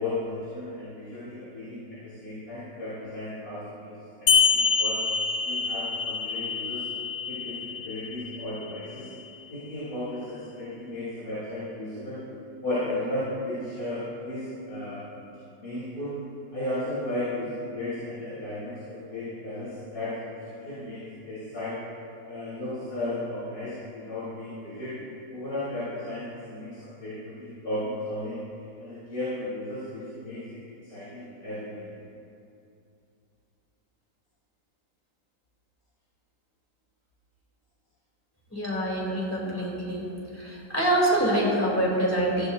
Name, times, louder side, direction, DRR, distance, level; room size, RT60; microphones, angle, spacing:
voice 1, 0.0-3.9 4.2-5.0 5.4-6.8 7.3-9.1 9.5-12.2 12.6-15.0 15.6-16.1 16.5-20.1 20.4-21.7 22.3-25.0 25.3-28.4 28.8-30.6 30.9-31.8, left 1 dB, 60° left, -12 dB, 4.2 m, -34 dB
sound 1, 4.3-9.3, left 6 dB, 85° left, 1.4 m, -27 dB
voice 2, 38.5-40.1 40.3-42.5, right 1 dB, 10° left, -6 dB, 3.5 m, -25 dB
16.5 x 16.0 x 2.8 m, 2.6 s
omnidirectional pair, 1.9 m